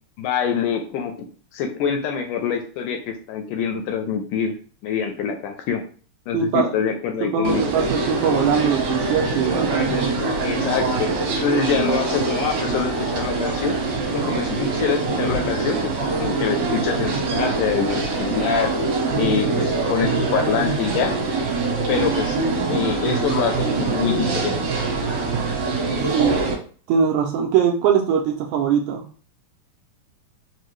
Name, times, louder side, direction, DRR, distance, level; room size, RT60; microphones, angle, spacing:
voice 1, 0.2-1.1 1.5-4.5 4.8-5.8 6.3-7.7 10.4-11.1 11.4-13.8 14.1-15.8 16.2-18.7 19.2-21.2 21.9-22.4 22.7-24.6, left 6 dB, 80° left, 5 dB, 1.9 m, -25 dB
voice 2, 6.3-6.7 7.3-9.8 26.1-26.3 26.9-29.0, right 7 dB, 80° right, 1 dB, 1.8 m, -21 dB
sound 1, 7.4-26.5, right 3 dB, 65° right, 2.2 m, -24 dB
5.3 x 2.2 x 3.1 m, 0.42 s
omnidirectional pair, 3.9 m